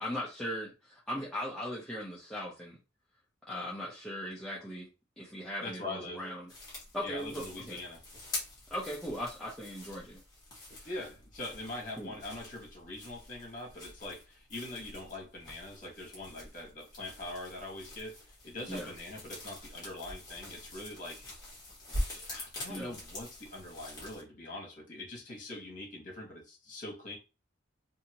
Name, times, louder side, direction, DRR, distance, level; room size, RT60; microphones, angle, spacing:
voice 1, 0.0-2.8 3.5-4.9 5.2-6.5 6.9-7.8 8.7-10.2 12.0-12.1 18.7-18.9 22.7-22.9, equal, 5° left, 0.6 m, -38 dB
voice 2, 5.6-6.2 7.0-8.0 10.8-21.2 22.1-27.2, left 2 dB, 40° left, 1.2 m, -43 dB
sound 1, 6.5-24.2, left 1 dB, 20° left, 1.1 m, -44 dB
2.7 x 2.6 x 2.8 m
head